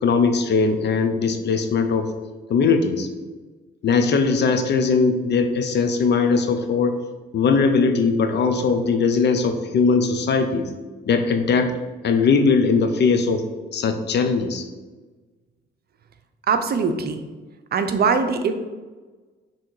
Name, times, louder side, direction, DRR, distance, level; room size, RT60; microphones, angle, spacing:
voice 1, 0.0-2.1 2.5-3.1 3.8-6.9 7.3-10.7 11.1-11.7 12.0-13.4 13.7-14.6, left 4 dB, 60° left, 6 dB, 0.8 m, -20 dB
voice 2, 16.5-17.2 17.7-18.5, right 5 dB, 50° right, 8 dB, 0.6 m, -21 dB
6.5 x 3.2 x 4.6 m, 1.3 s
cardioid pair, 90°, 20 cm